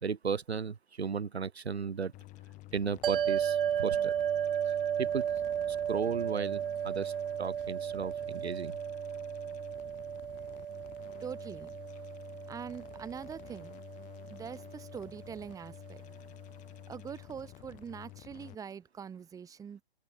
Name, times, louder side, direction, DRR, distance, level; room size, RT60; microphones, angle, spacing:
voice 1, 0.0-2.1 2.7-4.1 4.6-5.3 5.7-7.1 7.4-8.8, right 6 dB, 80° right, 1.6 m, -35 dB
sound 1, 2.1-18.6, left 19 dB, 25° left, 7.8 m, -51 dB
sound 2, 3.0-15.5, right 9 dB, 55° right, 1.2 m, -34 dB
voice 2, 11.2-11.7 12.5-13.7 14.3-16.0 16.9-19.8, right 7 dB, 10° right, 4.2 m, -43 dB
open air
hypercardioid pair, 140°, 32 cm